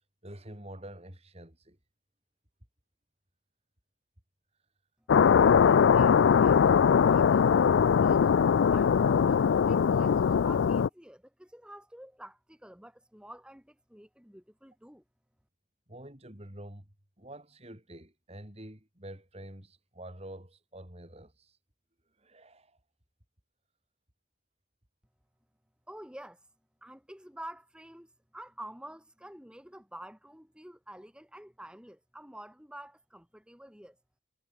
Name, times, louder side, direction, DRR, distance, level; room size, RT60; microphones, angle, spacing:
voice 1, 0.2-1.8 15.9-16.9 17.2-21.6 22.2-22.8, right 1 dB, 30° right, 4.1 m, -47 dB
sound 1, 5.1-10.9, left 7 dB, 70° left, 0.4 m, -21 dB
voice 2, 5.7-8.3 8.7-15.0 25.9-26.4 26.8-34.0, right 1 dB, 5° right, 4.8 m, -48 dB
head